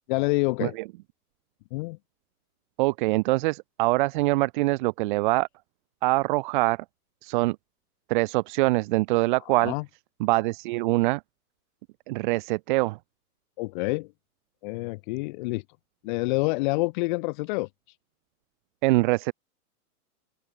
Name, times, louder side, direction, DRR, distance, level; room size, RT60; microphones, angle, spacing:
voice 1, 0.1-0.8 1.7-2.0 9.5-9.8 13.6-14.1 14.6-15.6 16.0-17.7, left 25 dB, 30° left, 4.5 m, -27 dB
voice 2, 2.8-5.5 6.0-6.8 7.2-7.6 8.1-9.7 10.2-11.2 12.1-13.0 18.8-19.3, right 21 dB, 30° right, 2.9 m, -24 dB
open air
supercardioid pair, 175°, 46 cm